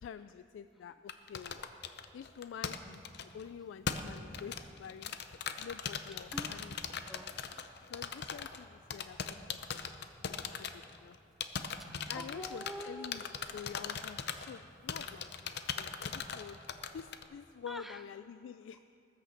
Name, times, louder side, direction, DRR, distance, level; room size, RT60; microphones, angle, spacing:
voice 1, 0.0-1.6 2.1-5.1 5.6-6.7 7.9-9.9 10.2-11.2 12.1-13.2 13.5-16.6 16.9-18.8, left 7 dB, 90° left, 12 dB, 0.3 m, -48 dB
sound 1, 1.1-3.4 3.9-8.6 8.9-11.2 11.4-14.6 14.9-17.2, left 6 dB, 60° left, 0.7 m, -39 dB
voice 2, 7.1-7.9 9.1-9.2 9.6-9.7 11.0-11.2 11.8-13.3 17.7-18.0 18.7-18.8, equal, ahead, 8 dB, 0.5 m, -48 dB
18.5 x 6.8 x 7.1 m, 2.6 s
head